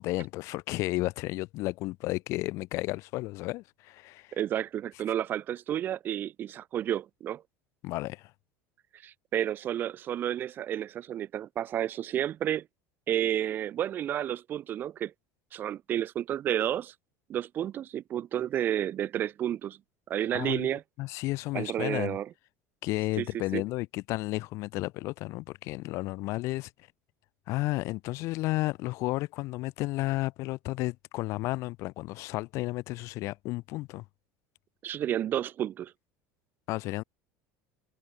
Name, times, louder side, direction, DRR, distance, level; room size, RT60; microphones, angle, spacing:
voice 1, 0.0-4.3 7.8-8.3 20.3-20.7 21.0-22.2 22.8-26.7 27.5-34.0 36.7-37.0, left 20 dB, 45° left, 1.6 m, -32 dB
voice 2, 4.3-7.4 9.0-12.7 13.1-15.1 15.5-16.9 17.3-19.8 20.1-20.8 21.5-22.3 23.2-23.3 23.5-23.6 34.8-35.9, right 11 dB, 30° right, 2.2 m, -31 dB
cardioid pair, 175°, 7 cm